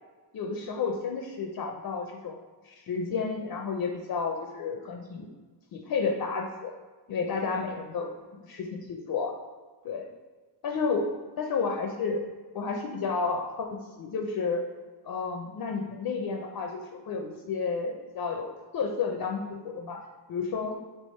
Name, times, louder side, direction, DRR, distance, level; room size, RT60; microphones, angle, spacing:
voice 1, 0.3-2.4 2.6-5.3 5.7-6.7 7.1-9.4 9.8-10.1 10.6-11.1 11.4-12.2 12.5-13.7 14.0-14.6 15.0-20.0 20.3-20.8, left 5 dB, 55° left, 3 dB, 0.5 m, -31 dB
3.4 x 2.9 x 4.1 m, 1.3 s
wide cardioid pair, 125°, 45 cm